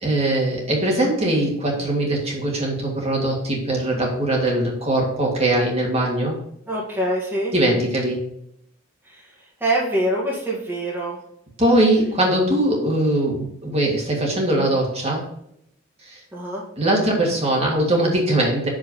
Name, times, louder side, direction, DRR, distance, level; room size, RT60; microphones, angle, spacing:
voice 1, 0.0-6.4 7.5-8.2 11.6-15.3 16.0-16.2 16.8-18.7, right 1 dB, 30° right, -2 dB, 1.8 m, -21 dB
voice 2, 6.7-7.5 9.1-9.2 9.6-11.2 16.3-16.6, right 1 dB, 10° right, -5 dB, 1.6 m, -24 dB
6.2 x 5.1 x 5.5 m, 0.73 s
head